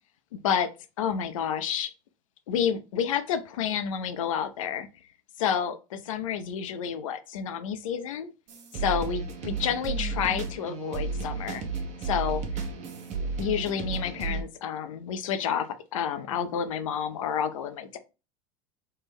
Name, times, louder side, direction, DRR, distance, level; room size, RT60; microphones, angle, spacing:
voice 1, 0.3-0.7 1.0-1.9 2.5-4.9 5.4-8.3 8.8-11.6 12.0-12.4 13.4-18.0, left 8 dB, 90° left, 0.4 m, -29 dB
sound 1, 8.5-14.4, right 4 dB, 45° right, 0.8 m, -33 dB
3.2 x 2.1 x 3.4 m
hypercardioid pair, 90°, 16 cm